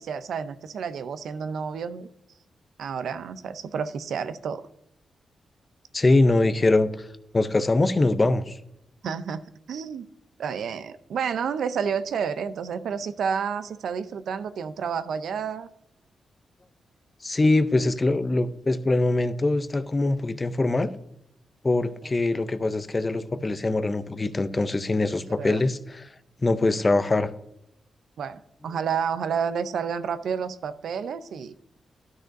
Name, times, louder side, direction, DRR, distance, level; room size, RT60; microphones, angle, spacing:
voice 1, 0.0-2.1 2.8-4.7 9.0-10.1 10.4-15.7 24.9-25.0 25.3-25.6 28.2-31.5, right 7 dB, 75° right, 12 dB, 0.5 m, -30 dB
voice 2, 5.9-6.9 7.3-8.6 17.2-20.9 21.6-26.0 26.4-27.3, left 2 dB, 25° left, 12 dB, 0.5 m, -23 dB
12.5 x 6.3 x 2.6 m, 0.79 s
wide cardioid pair, 140°, 0 cm